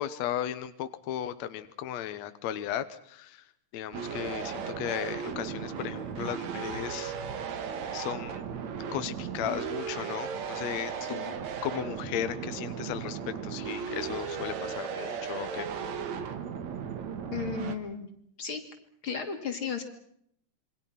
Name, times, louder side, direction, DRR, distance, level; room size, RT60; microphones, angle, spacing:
voice 1, 0.0-3.4 3.7-7.6 7.9-8.4 8.9-11.2 11.6-15.7, left 11 dB, 65° left, 11 dB, 2.2 m, -36 dB
sound 1, 3.9-17.8, right 7 dB, 65° right, 2.9 m, -36 dB
voice 2, 11.0-11.4 17.3-18.1 18.4-18.6 19.0-19.8, left 6 dB, 45° left, 6 dB, 3.2 m, -34 dB
27.5 x 24.5 x 5.8 m, 0.70 s
omnidirectional pair, 3.5 m